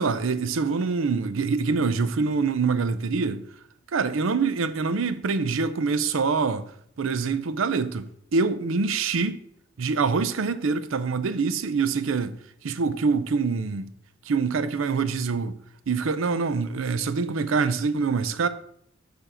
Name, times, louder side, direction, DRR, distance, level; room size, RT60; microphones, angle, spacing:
voice 1, 0.0-3.4 3.9-6.7 7.0-9.4 9.8-12.4 12.6-13.9 14.3-15.6 15.9-18.5, right 4 dB, 80° right, 0.5 m, -25 dB
6.9 x 5.1 x 4.3 m
head